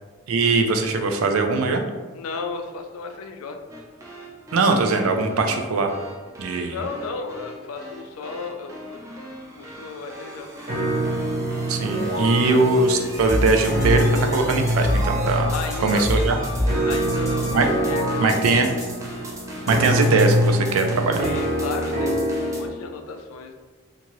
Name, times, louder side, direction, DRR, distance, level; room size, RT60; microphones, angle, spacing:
voice 1, 0.3-1.8 4.5-5.9 6.4-6.8 11.7-15.5 15.8-16.4 17.5-17.7 18.2-18.7 19.7-21.2, right 3 dB, 85° right, 5 dB, 0.4 m, -21 dB
voice 2, 2.1-3.6 6.6-9.0 9.6-10.5 10.9-11.0 15.5-16.3 16.7-17.5 17.8-18.2 18.5-18.6 21.2-23.5, left 4 dB, 85° left, 5 dB, 0.4 m, -34 dB
sound 1, 3.7-22.6, right 1 dB, 15° right, 0.3 m, -40 dB
sound 2, 10.7-22.7, equal, 45° right, 0.7 m, -25 dB
sound 3, 13.1-17.9 18.3-18.9 19.7-20.2, equal, 15° left, 0.7 m, -27 dB
2.6 x 2.5 x 3.0 m, 1.4 s
head